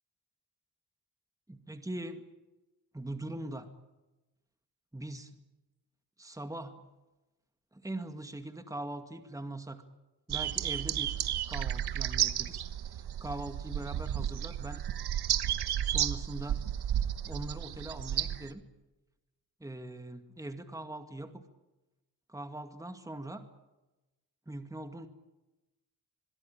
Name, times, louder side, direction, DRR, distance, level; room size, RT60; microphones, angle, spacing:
voice 1, 1.5-2.2 2.9-3.7 4.9-5.3 6.2-6.8 7.7-9.9 10.3-11.2 11.5-12.6 13.2-14.8 15.8-16.6 17.2-18.6 19.6-21.4 22.3-23.5 24.5-25.1, right 1 dB, 10° right, 7 dB, 2.2 m, -41 dB
sound 1, 10.3-18.5, right 11 dB, 80° right, 1.3 m, -32 dB
23.0 x 22.5 x 8.8 m, 1.1 s
cardioid pair, 70°, 38 cm